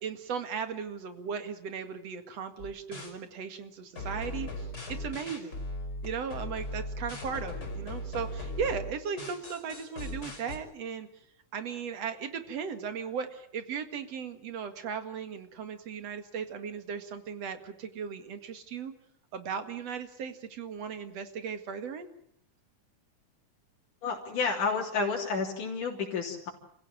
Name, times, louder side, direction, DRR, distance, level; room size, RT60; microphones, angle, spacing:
voice 1, 0.0-4.5 4.9-5.6 6.0-11.1 11.5-18.9 19.3-22.1, right 6 dB, 55° right, 9 dB, 2.9 m, -37 dB
sound 1, 2.6-3.1 4.0-10.6, left 1 dB, 30° left, 5.5 m, -38 dB
voice 2, 24.0-26.5, left 4 dB, 80° left, -1 dB, 4.8 m, -30 dB
29.0 x 16.0 x 9.0 m, 0.69 s
omnidirectional pair, 3.6 m